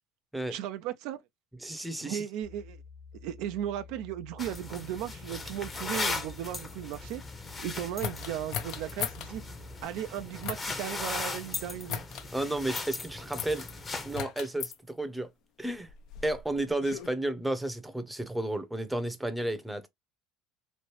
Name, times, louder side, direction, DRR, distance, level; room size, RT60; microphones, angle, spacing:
voice 1, 0.5-1.2 2.0-2.8 3.2-9.4 9.8-12.0, right 11 dB, 65° right, 0.4 m, -36 dB
voice 2, 1.6-2.2 12.3-13.6 14.0-15.3 15.6-15.9 16.2-19.9, right 1 dB, 5° right, 0.7 m, -32 dB
sound 1, 2.4-9.8, left 5 dB, 85° left, 1.1 m, -50 dB
sound 2, 4.4-14.2, left 3 dB, 25° left, 0.8 m, -38 dB
sound 3, 8.0-9.3 10.4-10.8 11.9-12.3 13.4-13.7 14.1-14.8 15.7-17.1, left 9 dB, 60° left, 0.5 m, -37 dB
3.1 x 2.6 x 2.9 m
hypercardioid pair, 85°, 0 cm